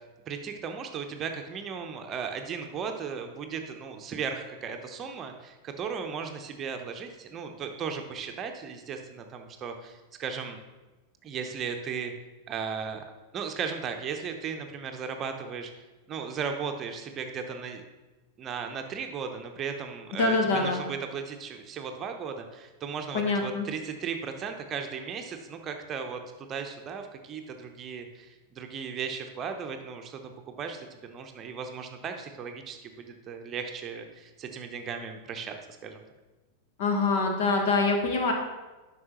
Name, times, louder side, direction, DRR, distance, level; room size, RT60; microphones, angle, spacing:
voice 1, 0.3-10.6 11.2-12.1 12.5-13.0 13.3-15.7 16.1-17.8 18.4-35.6 35.8-36.0, right 6 dB, 30° right, 5 dB, 0.8 m, -36 dB
voice 2, 20.1-20.8 23.1-23.6 36.8-38.3, left 3 dB, 55° left, 3 dB, 1.3 m, -25 dB
11.0 x 6.1 x 3.1 m, 1.2 s
figure-of-eight pair, 90°, 0 cm